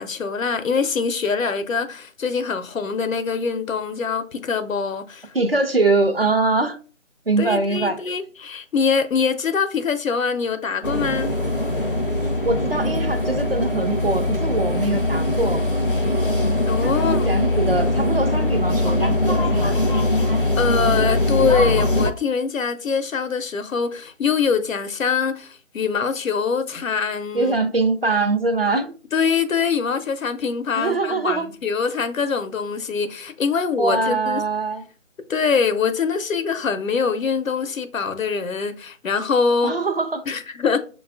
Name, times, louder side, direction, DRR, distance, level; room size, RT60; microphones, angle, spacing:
voice 1, 0.0-5.3 7.4-11.3 16.7-17.3 20.6-27.5 29.1-34.4 35.3-39.7 40.3-40.8, left 5 dB, 85° left, 0.6 m, -23 dB
voice 2, 5.3-6.8 7.3-8.0 12.4-15.6 16.8-19.8 27.3-28.9 30.7-31.5 33.8-34.9 39.6-40.2, right 3 dB, 50° right, 0.5 m, -23 dB
sound 1, 10.8-22.1, left 1 dB, 45° left, 0.5 m, -21 dB
5.9 x 2.3 x 2.3 m
figure-of-eight pair, 170°, 39 cm